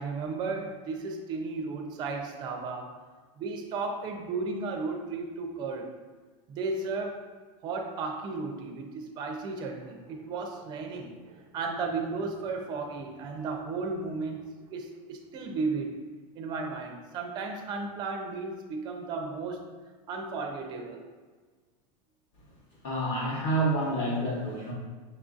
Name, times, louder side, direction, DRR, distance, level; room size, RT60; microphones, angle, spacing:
voice 1, 0.0-2.9 3.4-5.9 6.5-7.3 7.6-16.0 16.4-19.6 20.1-21.0, right 4 dB, 25° right, 2 dB, 0.4 m, -34 dB
voice 2, 22.8-24.7, right 1 dB, 30° left, -4 dB, 0.9 m, -28 dB
6.3 x 2.5 x 2.4 m, 1.4 s
supercardioid pair, 165°, 18 cm